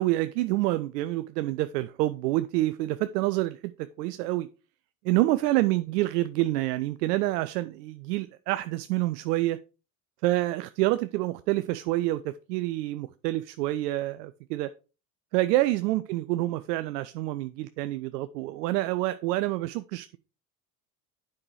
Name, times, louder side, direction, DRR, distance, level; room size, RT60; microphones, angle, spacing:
voice 1, 0.0-4.5 5.0-9.6 10.2-14.7 15.3-20.2, right 17 dB, 75° right, 0.6 m, -27 dB
8.6 x 5.6 x 4.7 m
hypercardioid pair, 65°, 49 cm